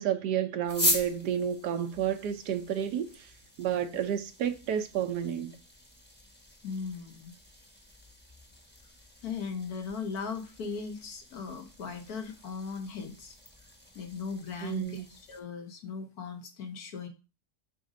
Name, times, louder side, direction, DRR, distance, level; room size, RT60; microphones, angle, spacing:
voice 1, 0.0-3.3 3.6-5.5 14.6-15.0, right 9 dB, 85° right, 1.4 m, -31 dB
sound 1, 0.6-15.4, left 1 dB, 5° left, 1.1 m, -40 dB
voice 2, 6.6-7.3 9.2-13.3 13.9-17.1, left 5 dB, 70° left, 1.5 m, -38 dB
7.6 x 2.6 x 5.0 m
omnidirectional pair, 1.7 m